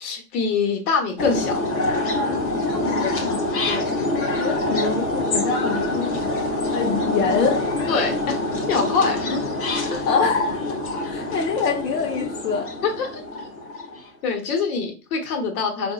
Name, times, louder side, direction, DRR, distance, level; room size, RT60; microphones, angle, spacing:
voice 1, 0.0-1.7 3.7-3.8 7.9-8.4 8.7-9.5 9.9-10.1 12.8-13.2 14.2-15.9, left 5 dB, 60° left, 1.2 m, -24 dB
sound 1, 1.2-14.0, left 2 dB, 25° left, 0.7 m, -25 dB
voice 2, 2.5-3.4 4.4-7.6 9.8-10.8 11.0-12.7, left 5 dB, 80° left, 1.0 m, -26 dB
3.9 x 2.6 x 2.3 m
hypercardioid pair, 135°, 48 cm